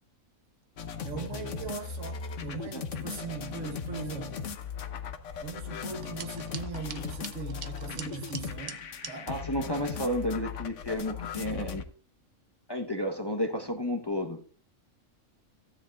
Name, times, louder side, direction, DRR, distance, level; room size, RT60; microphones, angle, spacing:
sound 1, 0.8-11.8, left 6 dB, 65° left, 1.2 m, -38 dB
voice 1, 1.0-4.4 5.4-9.3, right 6 dB, 65° right, 1.4 m, -40 dB
sound 2, 5.9-9.1, right 7 dB, 50° right, 0.6 m, -44 dB
voice 2, 9.3-11.8 12.7-14.4, left 1 dB, 20° left, 0.9 m, -31 dB
15.0 x 10.0 x 2.4 m
omnidirectional pair, 1.4 m